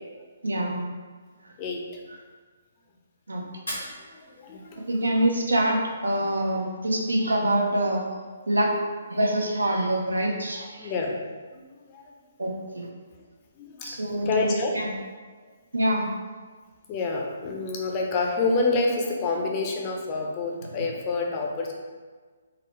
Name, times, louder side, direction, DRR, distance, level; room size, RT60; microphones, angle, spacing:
voice 1, 0.4-0.9 3.3-3.4 3.8-3.9 4.9-8.0 8.5-8.7 9.1-10.9 12.4-12.9 13.8-14.9 15.7-16.0, right 1 dB, 80° right, 1 dB, 0.6 m, -25 dB
voice 2, 1.6-2.0 3.4-5.1 10.8-11.2 11.5-12.2 12.6-12.7 13.6-14.0 14.2-14.7 15.4-15.5 16.9-21.7, left 3 dB, 30° left, 0 dB, 0.5 m, -28 dB
Fire, 3.5-5.5, left 1 dB, 85° left, 1.2 m, -40 dB
3.8 x 2.0 x 3.0 m, 1.5 s
figure-of-eight pair, 135°, 0 cm